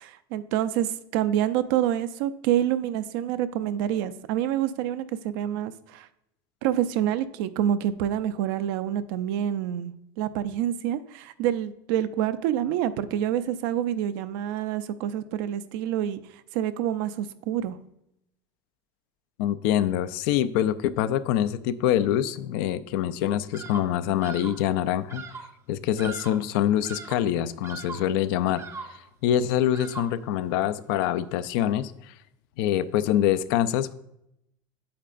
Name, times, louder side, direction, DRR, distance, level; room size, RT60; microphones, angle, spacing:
voice 1, 0.0-6.1 6.6-16.2 16.5-17.8, right 11 dB, 75° right, 12 dB, 0.5 m, -27 dB
voice 2, 19.4-25.2 25.7-28.6 29.2-31.9 32.6-33.9, left 11 dB, 75° left, 14 dB, 0.4 m, -25 dB
Bird vocalization bird call bird song, 23.5-24.0 24.2-24.7 25.1-25.5 26.0-26.5 26.8-27.3 27.6-28.1 28.6-29.1 29.7-30.3, right 5 dB, 25° right, 0.6 m, -40 dB
8.5 x 7.5 x 2.5 m, 0.80 s
supercardioid pair, 125°, 12 cm